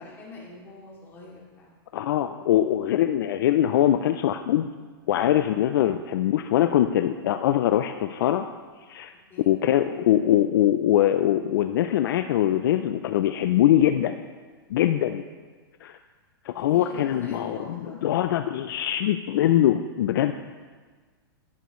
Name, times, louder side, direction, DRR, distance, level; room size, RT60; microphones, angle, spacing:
voice 1, 0.0-1.7 9.3-9.5 16.5-18.0, left 3 dB, 15° left, -5 dB, 2.6 m, -43 dB
voice 2, 1.9-4.7 5.1-8.4 8.9-9.1 9.5-14.2 14.7-15.2 15.8-16.0 16.5-20.3, left 12 dB, 60° left, 8 dB, 0.4 m, -22 dB
11.0 x 10.5 x 3.1 m, 1.4 s
hypercardioid pair, 145°, 13 cm